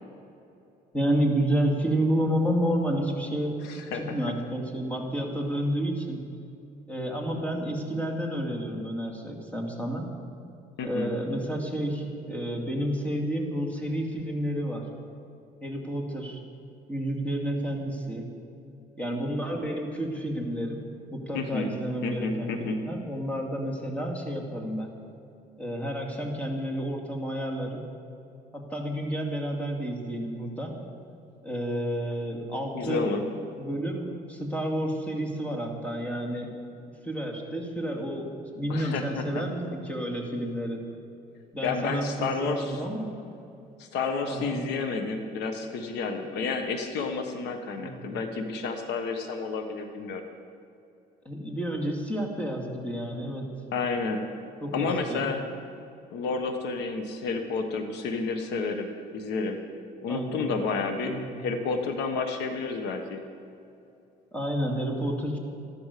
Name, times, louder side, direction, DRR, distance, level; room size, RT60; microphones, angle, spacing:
voice 1, 0.9-3.6 3.9-6.2 6.9-10.1 10.8-14.9 15.6-16.4 16.9-18.3 19.0-20.9 21.1-24.9 25.6-27.8 28.5-30.8 31.4-33.1 33.6-36.5 37.0-40.8 41.5-43.1 44.3-44.6 47.8-48.2 51.2-53.5 54.6-55.3 60.1-60.5 61.0-61.4 64.3-65.4, right 1 dB, 10° left, 0 dB, 2.5 m, -30 dB
voice 2, 3.6-4.2 10.8-11.1 21.3-21.7 22.0-22.8 32.7-33.2 38.7-39.4 41.6-42.7 43.8-50.2 53.7-54.2 54.7-55.4 56.1-58.9 59.1-59.6 60.0-63.2, left 4 dB, 85° left, 6 dB, 1.3 m, -30 dB
14.0 x 12.0 x 6.7 m, 2.7 s
cardioid pair, 110°, 17 cm